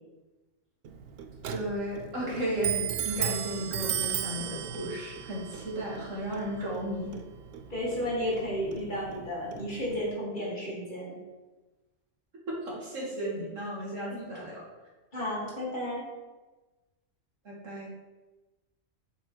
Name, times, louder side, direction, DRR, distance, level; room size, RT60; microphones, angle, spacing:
Clock, 0.8-10.1, right 9 dB, 65° right, 0.7 m, -36 dB
voice 1, 1.5-7.1 12.7-14.6 17.4-17.9, right 1 dB, 90° right, -4 dB, 2.2 m, -34 dB
voice 2, 7.7-11.2 15.1-16.0, equal, 40° left, -6 dB, 2.3 m, -32 dB
7.2 x 5.3 x 3.2 m, 1.2 s
omnidirectional pair, 1.3 m